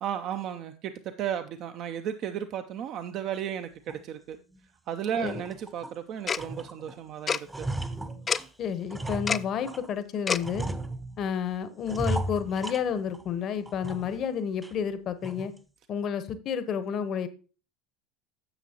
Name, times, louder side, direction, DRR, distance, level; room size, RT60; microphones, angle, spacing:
voice 1, 0.0-4.4 4.9-7.7, right 9 dB, 50° right, 9 dB, 0.6 m, -34 dB
sound 1, 3.9-4.0 4.5-4.6 5.1-6.0 6.4-7.0 7.3-9.9 10.4-11.4 11.8-13.3 13.6-14.3 14.6-14.7 15.2-15.6, right 1 dB, 10° right, 0.7 m, -35 dB
Tick-tock, 6.3-6.4 7.3-7.4 8.3-8.4 9.3-9.4 10.3-10.4, left 6 dB, 30° left, 0.3 m, -26 dB
voice 2, 8.6-10.7 11.2-15.5 15.9-17.3, left 7 dB, 45° left, 13 dB, 0.9 m, -30 dB
9.8 x 7.4 x 2.9 m, 0.35 s
hypercardioid pair, 75°, 0 cm